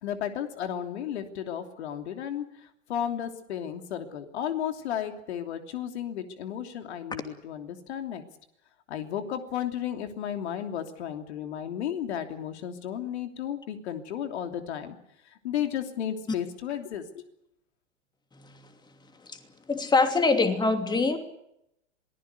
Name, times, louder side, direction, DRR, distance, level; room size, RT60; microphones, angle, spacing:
voice 1, 0.0-2.4 2.9-8.2 8.9-15.0 15.3-17.2, left 9 dB, 60° left, 6 dB, 3.1 m, -33 dB
voice 2, 19.7-21.2, left 3 dB, 10° left, 6 dB, 2.8 m, -24 dB
27.5 x 19.5 x 6.8 m, 0.78 s
figure-of-eight pair, 105°, 37 cm